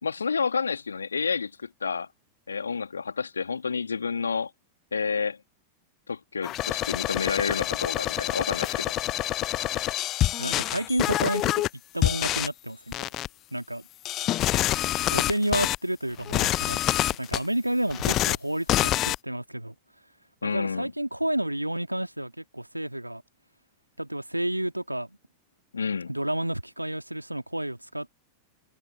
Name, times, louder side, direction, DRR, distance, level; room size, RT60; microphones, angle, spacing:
voice 1, 0.0-2.1 2.5-4.5 4.9-5.4 6.1-8.9 20.4-20.9 25.7-26.1, left 5 dB, 75° left, 2.3 m, -29 dB
sound 1, 6.4-11.7 12.0-12.5 12.9-13.3 14.1-15.8 16.2-17.4 17.9-18.4 18.7-19.2, left 15 dB, 35° left, 0.4 m, -26 dB
voice 2, 10.4-11.6 11.9-12.9 13.5-13.9 15.1-16.8 17.2-19.8 20.4-23.2 24.0-25.2 26.1-28.1, right 1 dB, 85° right, 2.5 m, -30 dB
figure-of-eight pair, 90°, 0 cm